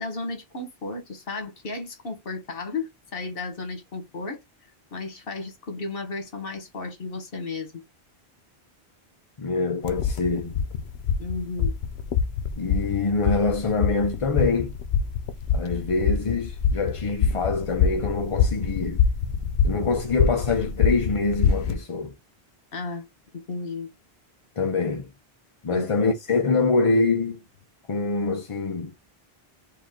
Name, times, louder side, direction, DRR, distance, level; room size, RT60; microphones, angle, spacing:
voice 1, 0.0-4.4 4.9-7.7 11.2-11.8 22.7-23.1 23.3-23.9 25.7-25.9, left 3 dB, 60° left, 1.5 m, -33 dB
voice 2, 9.4-10.6 12.6-14.7 15.5-19.0 19.6-22.1 24.6-25.1 25.6-27.4 27.9-28.9, left 4 dB, 40° left, 0.6 m, -25 dB
sound 1, 9.8-21.8, left 6 dB, 85° left, 1.0 m, -25 dB
4.8 x 2.7 x 3.7 m
omnidirectional pair, 1.1 m